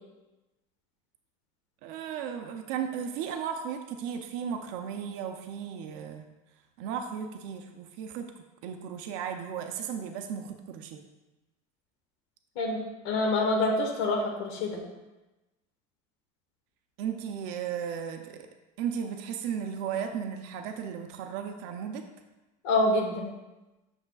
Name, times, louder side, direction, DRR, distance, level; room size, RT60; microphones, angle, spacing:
voice 1, 1.8-6.3 6.8-8.3 8.6-11.0 17.0-18.5 18.8-22.1, right 8 dB, 55° right, 6 dB, 0.5 m, -35 dB
voice 2, 12.5-14.8 22.6-23.3, left 2 dB, 65° left, 0 dB, 1.3 m, -26 dB
8.0 x 6.8 x 2.3 m, 1.1 s
cardioid pair, 180°, 16 cm